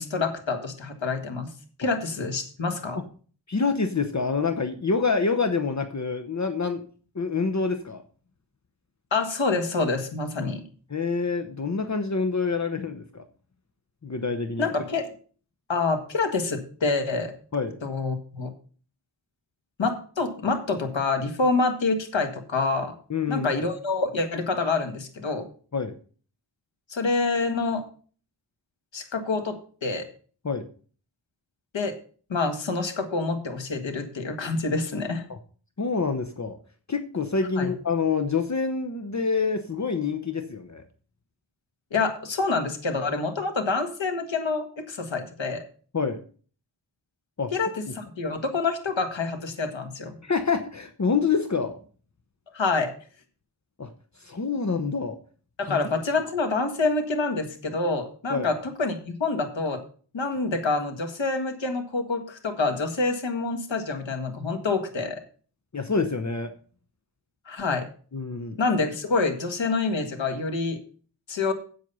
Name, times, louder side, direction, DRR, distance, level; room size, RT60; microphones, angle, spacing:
voice 1, 0.0-1.5 1.8-3.0 9.1-10.6 14.6-15.1 15.7-17.3 17.8-18.5 19.8-22.9 23.3-25.5 26.9-27.8 28.9-30.1 31.7-32.0 32.3-35.2 37.6-37.7 41.9-45.6 47.5-50.2 52.5-52.9 55.6-59.8 60.1-65.2 67.5-67.8 68.5-70.8 71.3-71.5, left 3 dB, 85° left, 5 dB, 1.8 m, -27 dB
voice 2, 3.5-6.9 7.1-8.0 10.9-13.2 14.0-14.8 17.5-17.7 23.1-23.5 25.7-25.9 30.4-30.7 35.3-35.4 35.8-36.6 36.9-40.8 45.9-46.2 47.4-47.5 50.2-51.8 53.8-55.2 55.7-55.8 58.3-58.5 65.7-66.5 68.1-68.6, left 4 dB, 40° left, 8 dB, 0.9 m, -27 dB
8.4 x 7.8 x 5.4 m, 0.41 s
wide cardioid pair, 95°, 44 cm